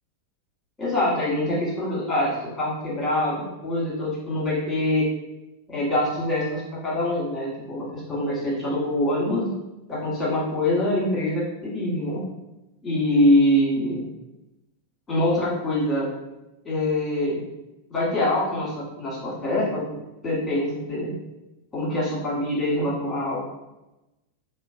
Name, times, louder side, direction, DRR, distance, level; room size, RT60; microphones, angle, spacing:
voice 1, 0.8-5.1 5.7-9.5 9.9-12.2 12.8-14.0 15.1-16.1 16.6-17.4 17.9-19.8 20.2-21.1 21.7-23.4, left 1 dB, 15° left, -7 dB, 1.4 m, -24 dB
3.0 x 2.2 x 2.5 m, 0.98 s
figure-of-eight pair, 90°, 0 cm